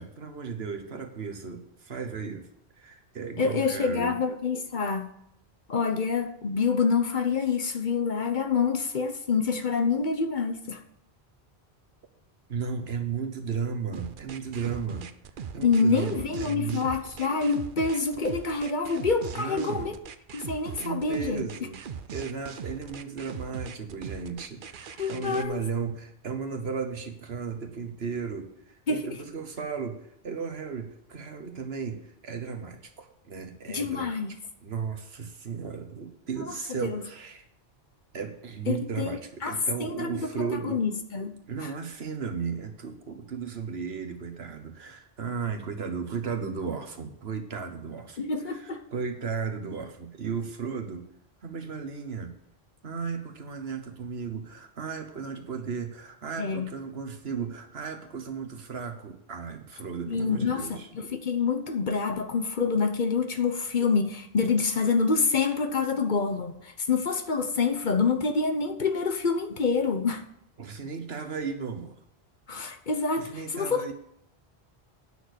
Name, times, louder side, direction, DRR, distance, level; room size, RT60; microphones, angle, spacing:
voice 1, 0.0-2.5 2.8-4.2 12.5-15.1 15.5-16.9 19.3-19.9 20.8-21.8 22.1-34.2 34.6-37.5 38.1-40.8 41.5-48.2 48.4-51.0 51.4-52.3 52.8-60.9 70.6-72.0 73.2-73.9, right 5 dB, 70° right, 1.5 m, -35 dB
voice 2, 3.4-5.2 5.7-10.8 15.6-19.9 20.3-21.5 25.0-25.6 28.9-29.1 33.7-34.3 36.8-37.0 38.7-39.5 39.8-41.3 41.6-41.7 48.2-48.8 56.4-56.8 60.1-70.2 72.5-73.9, left 5 dB, 50° left, 1.0 m, -27 dB
sound 1, 13.9-25.5, right 7 dB, 55° right, 0.8 m, -40 dB
9.1 x 6.3 x 8.1 m
omnidirectional pair, 1.1 m